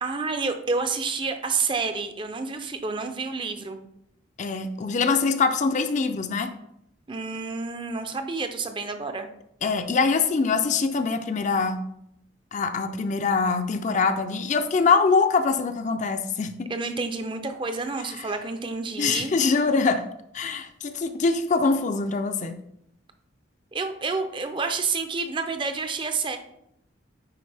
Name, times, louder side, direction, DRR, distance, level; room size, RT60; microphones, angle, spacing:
voice 1, 0.0-3.8 7.1-9.3 16.7-19.3 23.7-26.4, right 4 dB, 25° right, 7 dB, 0.5 m, -29 dB
voice 2, 4.4-6.5 9.6-11.8 12.5-16.5 19.0-20.0 20.3-22.6, left 4 dB, 35° left, 8 dB, 0.4 m, -23 dB
9.4 x 4.2 x 3.4 m, 0.78 s
head